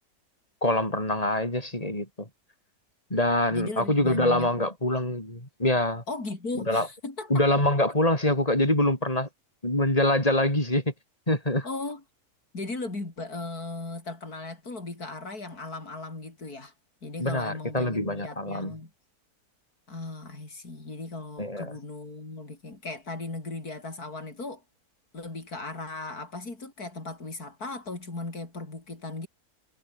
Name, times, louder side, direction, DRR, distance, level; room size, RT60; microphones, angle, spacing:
voice 1, 0.6-2.3 3.1-6.0 6.6-6.9 7.3-9.3 9.6-10.9 11.3-11.7 17.2-18.7 21.4-21.7, left 1 dB, 25° left, 7.5 m, -25 dB
voice 2, 3.5-4.7 6.1-7.5 11.6-12.0 12.5-16.7 17.0-18.9 19.9-24.6 25.1-29.3, left 3 dB, 75° left, 5.6 m, -37 dB
omnidirectional pair, 1.6 m